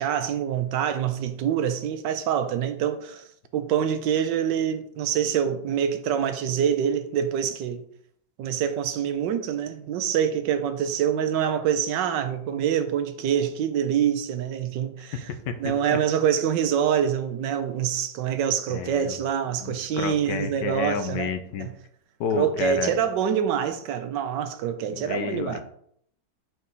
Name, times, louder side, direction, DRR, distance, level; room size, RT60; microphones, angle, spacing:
voice 1, 0.0-3.2 3.5-7.8 8.4-15.1 15.6-21.3 21.6-21.7 22.3-25.6, right 8 dB, 90° right, 1.3 m, -25 dB
voice 2, 15.3-16.0 18.7-19.1 19.6-21.7 22.2-22.9 24.9-25.6, left 6 dB, 80° left, 1.3 m, -31 dB
4.7 x 4.4 x 5.4 m
omnidirectional pair, 1.9 m